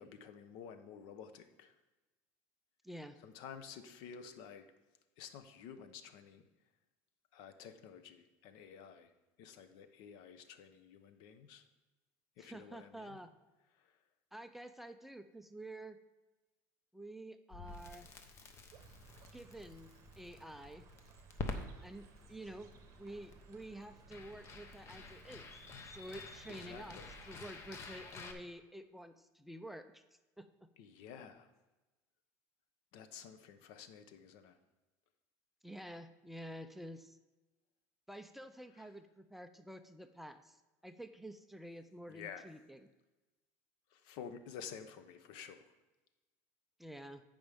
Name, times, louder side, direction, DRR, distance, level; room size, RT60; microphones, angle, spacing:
voice 1, 0.0-1.7 3.2-4.7 5.2-6.5 7.3-9.1 9.4-11.6 12.4-13.2 13.8-13.9 26.5-27.1 30.8-31.5 32.9-34.6 38.8-38.9 42.1-42.4 43.9-45.7, left 7 dB, 70° left, 10 dB, 0.8 m, -51 dB
voice 2, 2.8-3.2 12.4-13.3 14.3-16.0 16.9-18.1 19.3-19.9 20.2-20.8 21.8-22.7 23.0-25.5 25.9-27.0 27.3-30.0 30.4-30.5 35.6-37.2 38.1-40.6 40.8-42.9 46.8-47.2, right 1 dB, 5° right, 9 dB, 0.4 m, -49 dB
Crackle, 17.5-28.3, left 3 dB, 35° left, 1.0 m, -49 dB
sound 1, 18.7-27.5, right 6 dB, 40° right, 1.0 m, -61 dB
14.0 x 5.3 x 3.5 m, 1.1 s
cardioid pair, 135°, 8 cm